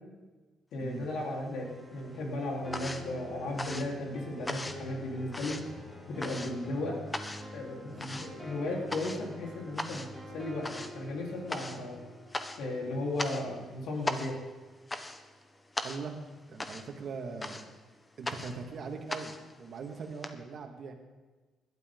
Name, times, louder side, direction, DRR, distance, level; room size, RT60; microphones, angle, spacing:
voice 1, 0.7-5.6 6.1-7.0 7.5-10.0 10.3-12.0 12.6-14.4, left 2 dB, 85° left, -2 dB, 4.1 m, -35 dB
sound 1, 0.9-1.7 2.0-20.3, left 2 dB, 20° left, 1.3 m, -40 dB
sound 2, 1.5-15.4, equal, 5° left, 3.8 m, -47 dB
voice 2, 15.8-16.2 16.5-17.7 18.2-20.9, right 4 dB, 60° right, 3 dB, 2.2 m, -41 dB
20.5 x 12.0 x 4.0 m, 1.3 s
cardioid pair, 90°, 0 cm